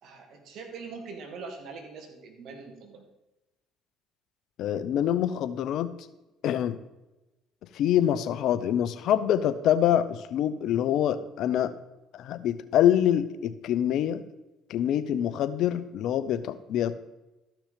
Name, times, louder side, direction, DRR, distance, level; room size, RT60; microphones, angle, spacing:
voice 1, 0.0-3.1, right 4 dB, 65° right, 4 dB, 2.3 m, -42 dB
voice 2, 4.6-5.9 6.4-6.8 7.7-11.7 12.1-14.2 14.7-16.9, left 10 dB, 70° left, 14 dB, 0.7 m, -25 dB
13.0 x 6.0 x 5.2 m, 1.0 s
supercardioid pair, 80°, 0 cm